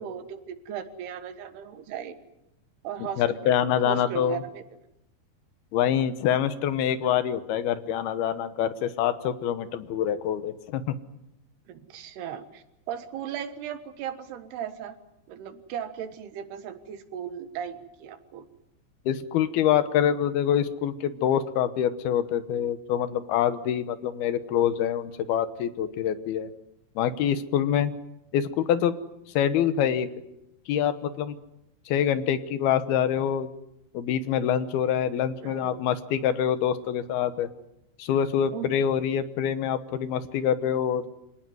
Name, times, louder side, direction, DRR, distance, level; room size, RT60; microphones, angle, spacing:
voice 1, 0.0-2.2 2.8-4.6 11.7-15.0 15.3-18.5 35.4-35.9 38.5-38.7, right 9 dB, 80° right, 10 dB, 3.5 m, -37 dB
voice 2, 3.2-4.4 5.7-11.0 19.1-26.5 27.0-27.9 28.3-28.9 29.3-30.1 30.7-31.4 31.9-33.5 33.9-37.5 38.0-41.1, left 9 dB, 75° left, 12 dB, 3.0 m, -25 dB
26.0 x 18.0 x 9.5 m, 0.85 s
omnidirectional pair, 4.6 m